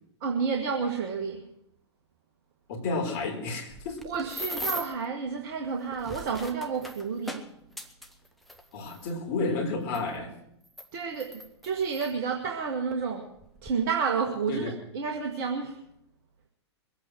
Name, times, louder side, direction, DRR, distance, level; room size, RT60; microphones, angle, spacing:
voice 1, 0.2-1.5 4.0-7.5 10.9-15.8, right 5 dB, 40° right, 1.6 m, -30 dB
voice 2, 2.7-4.0 8.7-10.3 14.5-14.7, left 3 dB, 40° left, 3.8 m, -31 dB
sound 1, 3.7-5.0 5.8-9.1 9.9-10.0 10.6-12.1 12.9-13.0 13.4-13.7, equal, ahead, 1.2 m, -39 dB
22.5 x 8.6 x 6.3 m
figure-of-eight pair, 105°, 15 cm